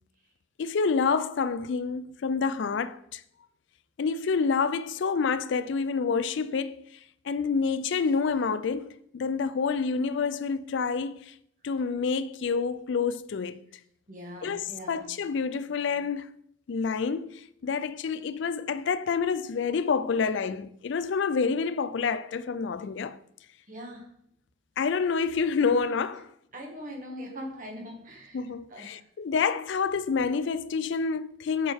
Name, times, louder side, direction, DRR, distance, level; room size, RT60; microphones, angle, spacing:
voice 1, 0.6-3.2 4.0-6.8 7.3-11.3 11.6-13.6 14.4-16.3 16.7-23.2 24.8-26.3 28.3-31.7, left 5 dB, 65° left, 0.4 m, -28 dB
voice 2, 14.1-15.0 23.7-24.0 26.5-28.4 28.7-29.0, equal, 40° right, 1.9 m, -41 dB
8.6 x 6.5 x 3.5 m
head